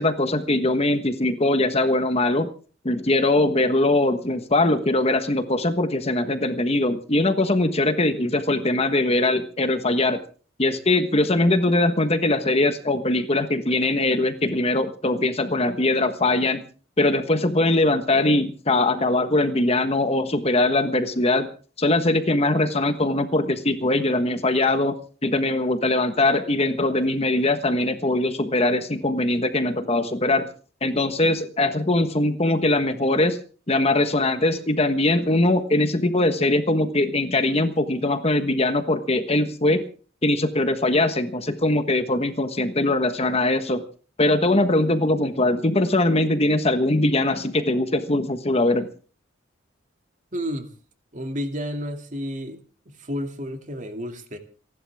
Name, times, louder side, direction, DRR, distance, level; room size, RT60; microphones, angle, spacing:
voice 1, 0.0-2.5 2.8-10.2 10.6-16.6 17.0-21.5 21.8-25.0 25.2-30.5 30.8-33.4 33.7-39.8 40.2-43.8 44.2-48.9, left 2 dB, 30° left, 1.3 m, -21 dB
voice 2, 50.3-50.7 51.1-52.6 53.0-54.4, equal, 40° right, 2.5 m, -31 dB
28.5 x 11.5 x 3.6 m
head